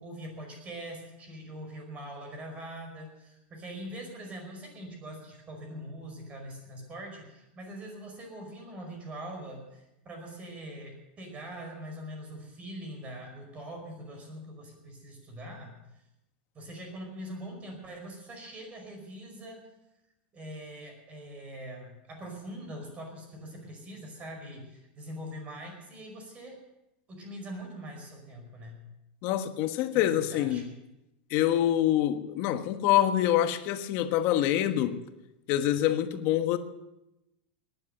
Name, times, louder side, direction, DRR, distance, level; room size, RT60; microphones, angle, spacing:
voice 1, 0.0-15.7 16.5-19.6 20.3-26.6 27.1-28.8 29.9-30.6, right 1 dB, 25° right, 5.1 m, -43 dB
voice 2, 29.2-30.6 31.3-35.0 35.5-36.6, left 12 dB, 50° left, 1.3 m, -26 dB
18.5 x 10.5 x 6.7 m
supercardioid pair, 145°, 5 cm